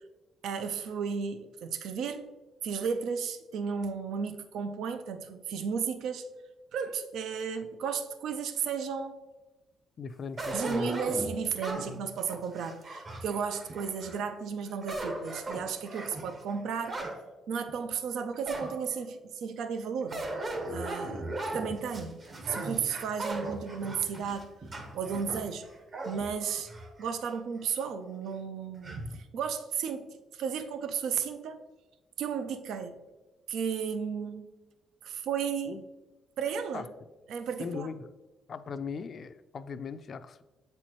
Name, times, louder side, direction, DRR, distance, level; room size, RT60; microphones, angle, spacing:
voice 1, 0.4-2.3 2.6-6.3 6.7-9.2 10.5-17.0 17.5-20.3 20.7-22.2 22.5-24.5 24.9-25.7 26.0-26.7 27.0-31.6 32.2-33.0 33.5-34.5 35.0-35.8 36.4-36.9 37.3-37.9, right 6 dB, 80° right, 9 dB, 0.4 m, -34 dB
voice 2, 10.0-11.0 35.7-35.8 36.7-36.9 37.6-38.1 38.5-40.4, left 5 dB, 50° left, 12 dB, 0.3 m, -39 dB
sound 1, 10.4-14.2 14.7-17.2 17.7-17.8 18.5-19.1 20.1-27.2 27.6-27.7 28.8-29.2, right 2 dB, 45° right, 1.0 m, -38 dB
7.6 x 4.3 x 3.0 m, 1.1 s
cardioid pair, 90°, 0 cm